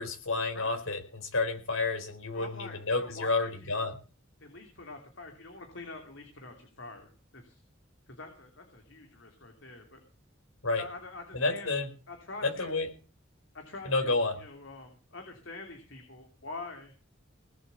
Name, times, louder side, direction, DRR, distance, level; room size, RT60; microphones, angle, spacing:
voice 1, 0.0-4.0 10.6-10.8 11.3-11.9 12.4-12.9 13.8-14.3, left 3 dB, 90° left, 6 dB, 4.5 m, -30 dB
voice 2, 2.3-3.8 4.4-7.6 8.1-10.0 10.8-11.7 12.1-12.8 13.5-16.9, left 3 dB, 65° left, 3 dB, 3.1 m, -46 dB
19.5 x 7.9 x 7.0 m, 0.35 s
head